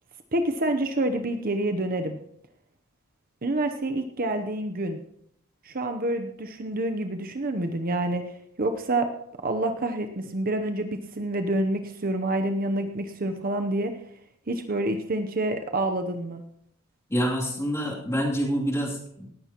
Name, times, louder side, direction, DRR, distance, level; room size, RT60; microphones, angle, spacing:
voice 1, 0.3-2.2 3.4-5.0 5.6-8.3 8.6-9.1 9.4-13.9 14.5-16.4, right 1 dB, 40° right, 6 dB, 0.8 m, -27 dB
voice 2, 17.1-19.3, equal, 15° left, -3 dB, 2.9 m, -27 dB
18.5 x 14.0 x 3.0 m, 0.73 s
head